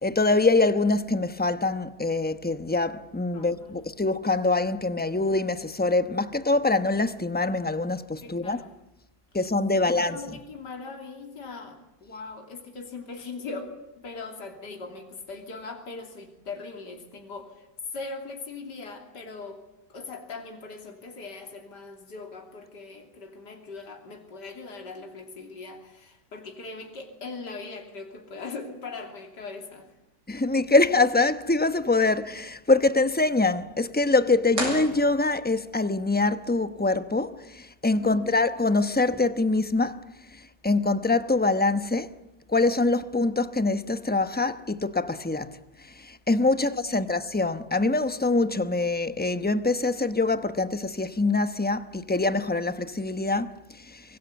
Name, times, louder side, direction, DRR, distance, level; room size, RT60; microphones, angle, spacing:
voice 1, 0.0-8.6 9.3-10.2 30.3-40.0 40.6-42.1 42.5-45.5 46.0-53.5 53.9-54.0, left 3 dB, 10° left, 0.6 m, -24 dB
voice 2, 3.3-3.7 8.2-8.7 9.7-17.7 17.9-19.6 19.9-29.9 38.0-38.3 46.6-47.1, left 3 dB, 70° left, 3.5 m, -40 dB
sound 1, 34.5-35.7, right 1 dB, 70° right, 8.3 m, -33 dB
24.5 x 23.5 x 8.2 m
omnidirectional pair, 1.9 m